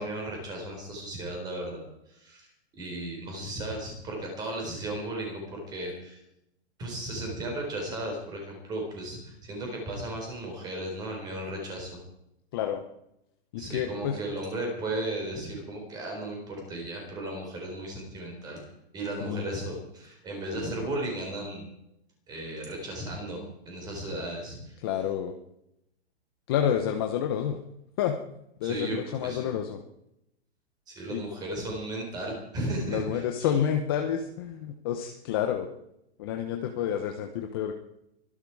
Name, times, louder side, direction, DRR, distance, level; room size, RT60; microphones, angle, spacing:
voice 1, 0.0-2.5 2.7-6.2 6.8-11.9 13.6-18.6 18.9-21.7 22.3-24.8 28.6-29.5 30.9-33.5, right 1 dB, 10° right, 1 dB, 4.3 m, -35 dB
voice 2, 12.5-12.8 13.5-14.2 19.3-19.4 24.8-25.3 26.5-27.6 28.0-28.2 28.6-29.8 31.1-31.2 32.9-35.7 36.2-37.7, left 9 dB, 20° left, 5 dB, 0.8 m, -29 dB
24.0 x 11.0 x 4.8 m, 0.80 s
hypercardioid pair, 175°, 33 cm